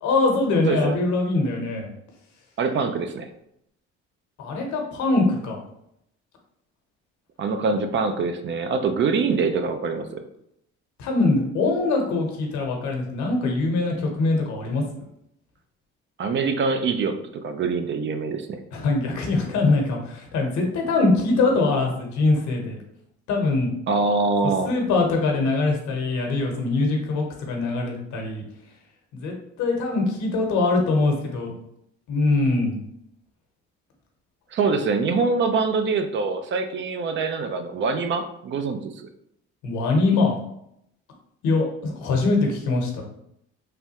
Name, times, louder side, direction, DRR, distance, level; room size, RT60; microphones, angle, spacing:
voice 1, 0.0-1.9 4.4-5.6 11.0-14.8 18.7-22.8 23.3-23.7 24.6-28.4 29.1-29.3 29.6-31.5 32.1-32.8 39.6-40.3 41.4-43.0, left 3 dB, 75° left, 1 dB, 0.9 m, -22 dB
voice 2, 2.6-3.3 7.4-10.2 16.2-18.6 23.9-24.7 34.5-39.1, right 4 dB, 40° right, 8 dB, 0.4 m, -24 dB
3.3 x 2.3 x 2.8 m, 0.76 s
supercardioid pair, 80°, 29 cm